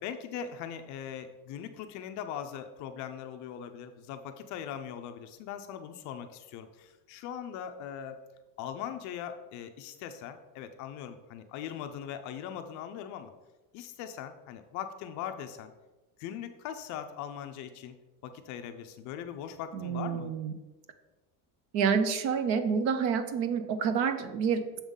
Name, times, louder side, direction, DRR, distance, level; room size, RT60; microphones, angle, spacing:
voice 1, 0.0-8.2 8.6-13.3 13.7-15.7 16.2-18.0 18.2-20.3, left 9 dB, 45° left, 8 dB, 0.4 m, -40 dB
voice 2, 19.7-20.5 21.7-24.7, right 6 dB, 40° right, 10 dB, 0.5 m, -28 dB
7.1 x 3.7 x 5.4 m, 1.1 s
cardioid pair, 175°, 44 cm